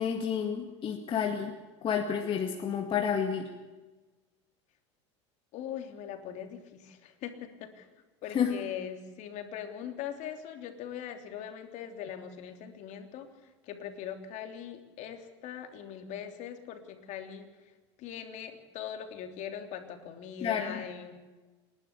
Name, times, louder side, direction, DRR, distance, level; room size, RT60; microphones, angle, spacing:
voice 1, 0.0-1.5 1.8-3.5 8.3-8.6 20.4-20.8, left 7 dB, 35° left, 3 dB, 2.1 m, -30 dB
voice 2, 5.5-7.9 8.2-13.3 13.6-17.5 18.0-21.2, left 9 dB, 55° left, 6 dB, 3.3 m, -41 dB
28.0 x 12.0 x 8.2 m, 1.2 s
hypercardioid pair, 100°, 15 cm